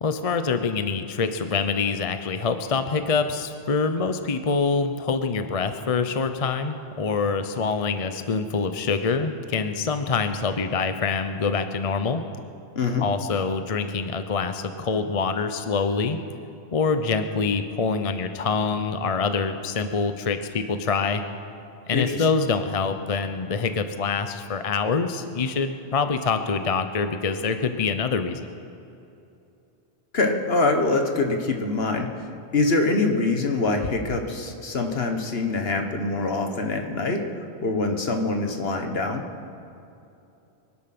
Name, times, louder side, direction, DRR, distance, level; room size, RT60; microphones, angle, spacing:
voice 1, 0.0-12.2 13.0-16.2 16.7-21.2 21.9-28.4, left 4 dB, 40° left, 8 dB, 0.7 m, -25 dB
voice 2, 12.7-13.1 21.9-22.2 30.1-32.3 32.5-37.2 37.6-39.2, left 3 dB, 65° left, 4 dB, 1.6 m, -24 dB
23.5 x 10.0 x 6.0 m, 2.8 s
omnidirectional pair, 1.1 m